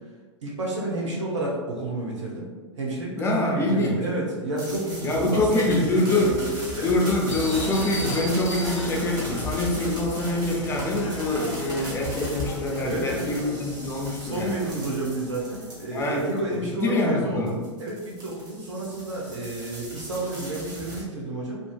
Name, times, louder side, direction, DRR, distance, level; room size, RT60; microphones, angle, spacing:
voice 1, 0.4-2.5 2.8-7.1 12.8-13.3 14.1-21.6, right 2 dB, 70° right, -3 dB, 0.7 m, -30 dB
voice 2, 3.2-4.1 5.0-6.4 6.8-14.6 15.9-16.2 16.5-17.6, left 2 dB, 15° left, -1 dB, 0.5 m, -25 dB
sound 1, 4.6-16.5 17.5-21.0, equal, 25° right, 1.2 m, -38 dB
sound 2, 7.3-17.2, left 2 dB, 85° left, 0.4 m, -36 dB
3.7 x 2.4 x 2.2 m, 1.5 s
figure-of-eight pair, 95°, 16 cm